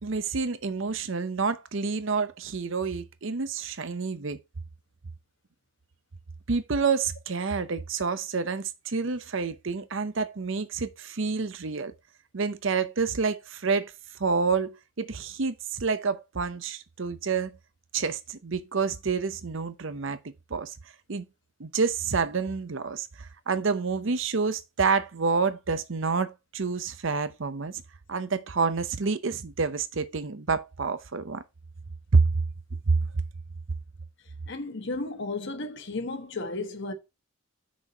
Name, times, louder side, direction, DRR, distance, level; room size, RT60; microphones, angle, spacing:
voice 1, 0.0-4.4 6.5-11.9 12.3-13.9 14.2-17.6 17.9-20.8 21.1-21.2 21.6-27.8 28.1-31.4 32.1-32.2 32.9-33.0, right 4 dB, 60° right, 0.7 m, -28 dB
voice 2, 34.5-36.9, left 2 dB, 55° left, 1.2 m, -33 dB
6.2 x 4.6 x 5.1 m
head